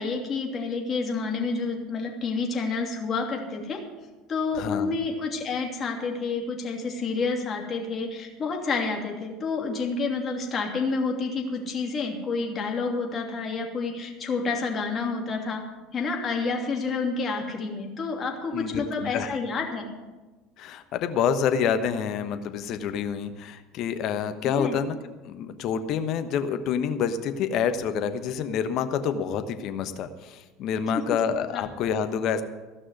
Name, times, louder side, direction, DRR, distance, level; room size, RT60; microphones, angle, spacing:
voice 1, 0.0-3.8 4.3-15.6 15.9-19.8 24.4-24.8 30.9-31.0 31.5-31.6, left 4 dB, 35° left, 2 dB, 2.8 m, -29 dB
voice 2, 4.5-4.9 18.5-19.3 20.6-25.0 25.2-32.4, left 7 dB, 55° left, 9 dB, 1.1 m, -27 dB
15.5 x 6.2 x 9.5 m, 1.2 s
hypercardioid pair, 70°, 0 cm